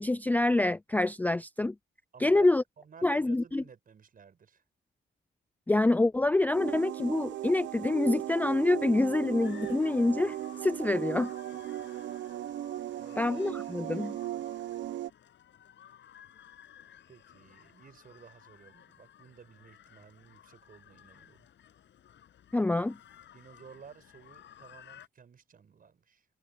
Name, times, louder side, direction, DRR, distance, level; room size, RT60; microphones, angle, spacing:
voice 1, 0.0-1.7 2.2-2.6 3.0-3.6 5.7-10.4 10.6-11.3 13.2-14.2 22.5-23.0, left 2 dB, 10° left, 0.4 m, -26 dB
voice 2, 2.1-2.5 2.8-4.6 12.9-13.2 17.1-21.5 23.3-26.3, right 6 dB, 45° right, 5.3 m, -54 dB
sound 1, 6.5-15.1, right 13 dB, 70° right, 0.8 m, -37 dB
sound 2, 9.4-25.1, left 10 dB, 65° left, 7.4 m, -56 dB
cardioid pair, 90°, 20 cm